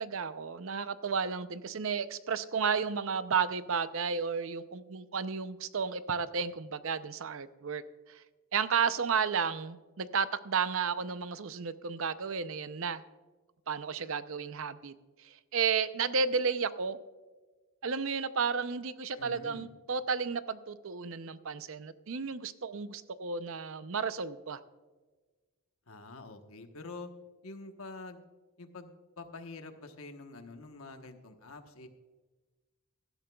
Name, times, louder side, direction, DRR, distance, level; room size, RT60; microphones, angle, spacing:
voice 1, 0.0-7.8 8.1-8.2 8.5-13.0 13.7-14.9 15.2-17.0 17.8-24.6, right 5 dB, 65° right, 13 dB, 0.6 m, -32 dB
voice 2, 19.2-19.7 25.9-27.1 27.4-28.2 28.6-28.9 29.2-31.9, left 3 dB, 70° left, 6 dB, 1.2 m, -46 dB
17.0 x 12.5 x 2.3 m, 1.3 s
head